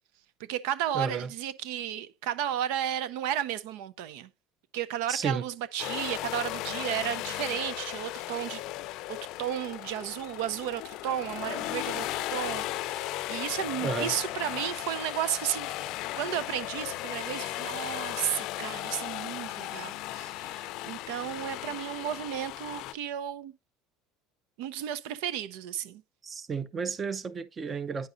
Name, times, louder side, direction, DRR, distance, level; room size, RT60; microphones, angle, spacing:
voice 1, 0.4-4.3 4.7-8.6 9.1-15.9 16.2-23.5 24.6-26.0, right 11 dB, 80° right, 0.6 m, -33 dB
voice 2, 0.9-1.3 5.1-5.4 13.8-14.1 26.2-28.1, right 5 dB, 25° right, 0.6 m, -32 dB
sound 1, 5.8-22.9, left 16 dB, 60° left, 0.5 m, -36 dB
9.4 x 6.1 x 2.5 m
cardioid pair, 145°, 0 cm